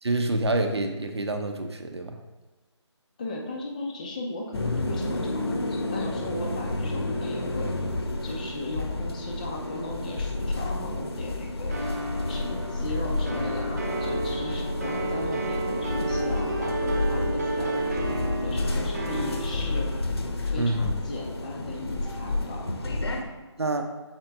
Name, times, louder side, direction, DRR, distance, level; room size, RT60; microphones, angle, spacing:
voice 1, 0.0-2.2 20.6-21.0 23.6-23.8, right 2 dB, 60° right, 6 dB, 0.8 m, -27 dB
voice 2, 3.2-7.7 8.2-11.8 12.3-20.1 20.4-23.3, left 2 dB, 15° left, -1 dB, 0.6 m, -37 dB
sound 1, 4.5-23.2, left 2 dB, 60° left, 0.9 m, -30 dB
sound 2, 11.7-20.0, right 2 dB, 30° right, 1.0 m, -31 dB
7.3 x 4.5 x 3.4 m, 1.2 s
figure-of-eight pair, 155°, 15 cm